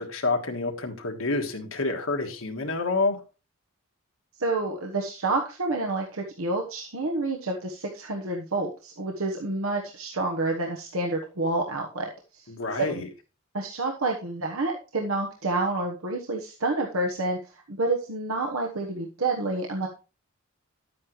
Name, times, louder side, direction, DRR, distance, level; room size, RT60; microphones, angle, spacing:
voice 1, 0.0-3.2 12.5-13.1, left 3 dB, 70° left, 4 dB, 1.5 m, -28 dB
voice 2, 4.4-12.5 12.7-13.0 13.5-19.9, right 2 dB, 80° right, 1 dB, 1.2 m, -29 dB
11.0 x 8.5 x 3.2 m, 0.31 s
head